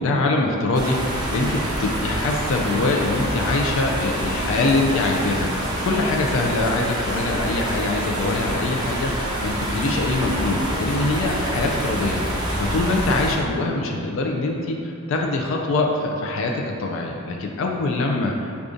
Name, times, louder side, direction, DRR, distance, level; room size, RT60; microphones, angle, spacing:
voice 1, 0.0-18.7, left 2 dB, 65° left, 1 dB, 0.3 m, -24 dB
sound 1, 0.7-13.4, right 1 dB, 20° right, 0.5 m, -26 dB
4.9 x 2.3 x 2.5 m, 2.5 s
head